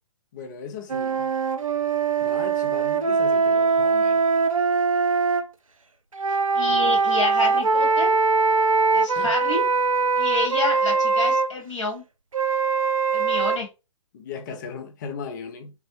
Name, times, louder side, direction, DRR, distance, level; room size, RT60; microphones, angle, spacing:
voice 1, 0.3-1.3 2.2-4.2 6.7-7.0 9.1-9.3 14.1-15.7, left 5 dB, 35° left, 0.5 m, -37 dB
sound 1, 0.9-5.4 6.1-11.5 12.3-13.6, right 4 dB, 85° right, 0.4 m, -22 dB
voice 2, 6.3-8.1 8.9-9.6 10.2-12.0 13.1-13.7, left 2 dB, 65° left, 1.6 m, -28 dB
3.4 x 2.0 x 2.8 m
figure-of-eight pair, 125°, 17 cm